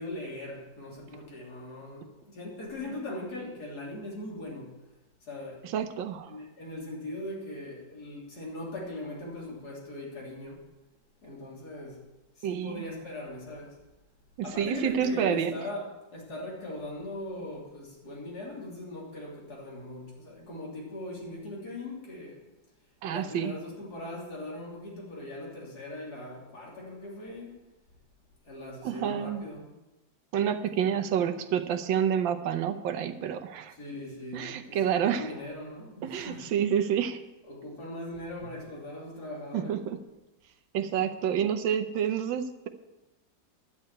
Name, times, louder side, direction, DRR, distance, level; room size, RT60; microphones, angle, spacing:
voice 1, 0.0-4.7 5.2-5.6 6.3-10.6 11.2-12.0 12.4-13.8 14.4-22.4 23.1-27.5 28.5-29.7 30.8-31.0 33.8-36.5 37.5-39.8, left 1 dB, 55° left, -3 dB, 3.7 m, -40 dB
voice 2, 5.6-6.3 12.4-12.8 14.6-15.6 23.0-23.5 28.8-29.4 30.3-33.7 34.3-35.3 36.0-37.2 39.5-40.0 40.7-42.7, right 8 dB, 85° right, 9 dB, 1.6 m, -28 dB
11.0 x 6.6 x 9.0 m, 1.0 s
omnidirectional pair, 2.0 m